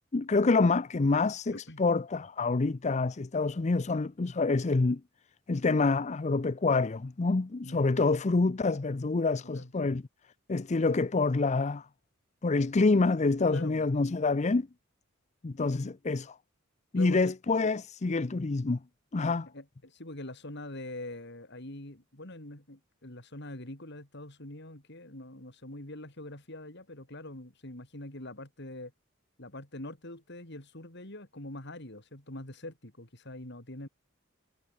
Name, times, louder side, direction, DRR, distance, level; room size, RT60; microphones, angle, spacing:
voice 1, 0.1-5.0 5.5-10.0 10.5-11.9 12.4-14.7 15.4-16.4 16.9-18.8 19.1-19.5, left 3 dB, 35° left, 0.5 m, -27 dB
voice 2, 1.5-1.8 7.6-7.9 9.5-9.9 13.5-13.9 16.9-17.3 19.5-28.9 29.4-33.9, left 1 dB, 60° left, 4.7 m, -44 dB
head